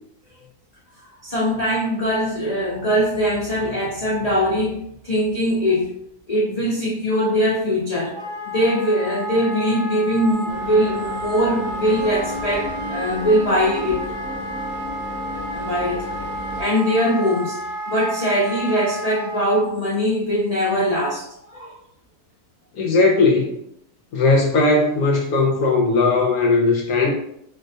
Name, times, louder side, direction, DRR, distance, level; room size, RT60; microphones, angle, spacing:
voice 1, 1.2-5.9 6.3-14.0 15.5-16.3 16.6-17.6 17.9-21.7, equal, 85° left, -6 dB, 0.3 m, -21 dB
Wind instrument woodwind instrument, 8.1-19.5, equal, 60° right, 0.9 m, -31 dB
sound 1, 10.5-16.6, left 1 dB, 80° right, 1.2 m, -33 dB
voice 2, 22.8-23.6 24.1-27.1, left 3 dB, 70° left, 0 dB, 1.0 m, -18 dB
4.2 x 2.1 x 2.6 m, 0.73 s
omnidirectional pair, 1.7 m